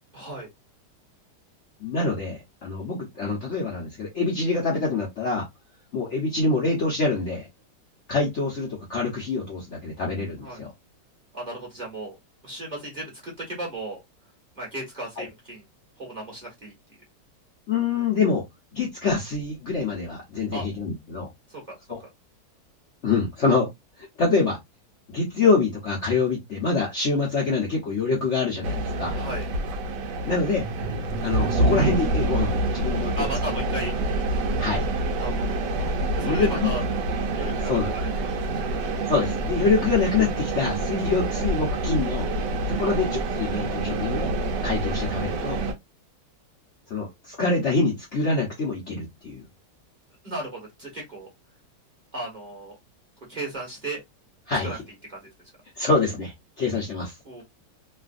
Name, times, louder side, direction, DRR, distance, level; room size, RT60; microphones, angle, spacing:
voice 1, 0.1-0.5 10.4-10.6 11.3-12.1 12.4-14.0 14.5-15.6 16.0-17.0 20.5-20.6 21.5-21.7 29.1-29.4 33.2-33.9 35.2-35.6 36.1-36.8 37.3-37.7 38.0-38.4 42.8-43.0 50.2-51.3 52.1-52.8 53.3-54.0 54.6-54.8 55.1-55.2 57.2-57.4, right 2 dB, 30° right, 1.3 m, -35 dB
voice 2, 1.8-5.5 5.9-7.5 8.1-10.7 15.2-15.3 17.7-18.4 18.7-21.3 21.9-22.0 23.0-23.7 24.0-24.6 25.1-29.2 30.2-30.6 31.2-33.2 34.6-34.9 36.2-36.8 37.7-37.9 39.1-42.3 42.7-44.3 44.6-45.6 46.9-49.4 54.5-54.8 55.7-57.4, left 4 dB, 50° left, 0.9 m, -25 dB
sound 1, 28.6-45.7, right 2 dB, 75° right, 1.3 m, -27 dB
3.2 x 2.4 x 2.4 m
omnidirectional pair, 1.9 m